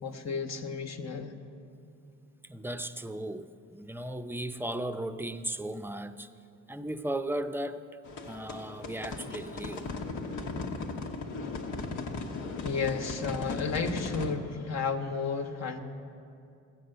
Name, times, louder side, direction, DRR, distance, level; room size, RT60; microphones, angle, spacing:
voice 1, 0.0-1.3 12.6-15.8, left 5 dB, 60° left, 4 dB, 1.1 m, -32 dB
voice 2, 2.4-6.3 6.7-8.0 8.3-9.9, right 1 dB, 5° right, 10 dB, 0.5 m, -36 dB
sound 1, 8.0-14.3, left 3 dB, 90° left, 1.2 m, -37 dB
16.5 x 6.7 x 7.8 m, 2.5 s
cardioid pair, 90°, 30 cm